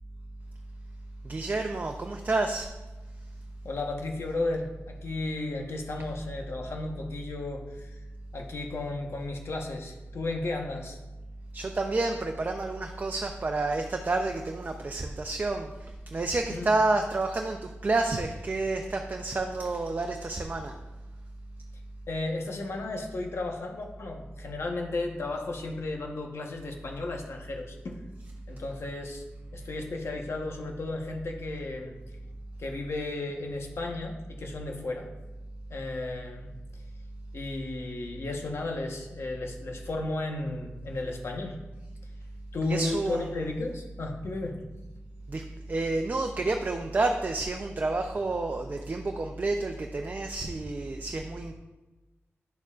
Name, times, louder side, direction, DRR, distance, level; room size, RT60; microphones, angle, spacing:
voice 1, 1.2-2.7 11.5-15.7 16.1-20.7 42.6-43.4 45.3-51.5, right 2 dB, 40° right, 4 dB, 0.5 m, -29 dB
voice 2, 3.6-8.0 8.3-11.0 16.5-16.7 22.1-28.0 28.5-29.2 29.5-31.9 32.6-35.1 35.7-36.8 37.3-41.6 42.5-44.6, left 2 dB, 70° left, 1 dB, 1.1 m, -34 dB
10.5 x 6.8 x 2.4 m, 1.1 s
wide cardioid pair, 145°, 5 cm